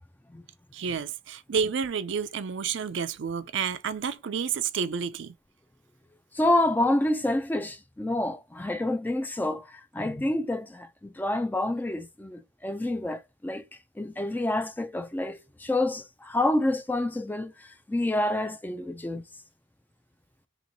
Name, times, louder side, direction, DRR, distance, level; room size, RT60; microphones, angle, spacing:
voice 1, 0.7-5.3, right 6 dB, 60° right, 0.4 m, -30 dB
voice 2, 6.3-13.6 14.0-19.2, left 1 dB, 10° left, 0.3 m, -28 dB
3.0 x 3.0 x 3.9 m
head